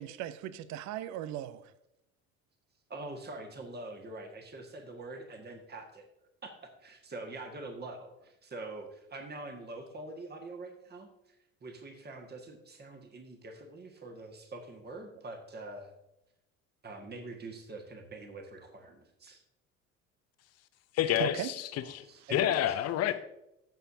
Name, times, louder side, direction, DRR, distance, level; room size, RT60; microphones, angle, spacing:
voice 1, 0.0-1.7 21.2-21.5, right 12 dB, 45° right, 0.6 m, -37 dB
voice 2, 2.9-6.1 6.4-11.4 11.6-15.9 16.8-19.4 21.7-22.6, right 2 dB, 25° right, 1.7 m, -44 dB
voice 3, 20.9-22.0 22.3-23.1, left 12 dB, 40° left, 0.8 m, -29 dB
15.5 x 7.0 x 2.7 m
figure-of-eight pair, 60°, 41 cm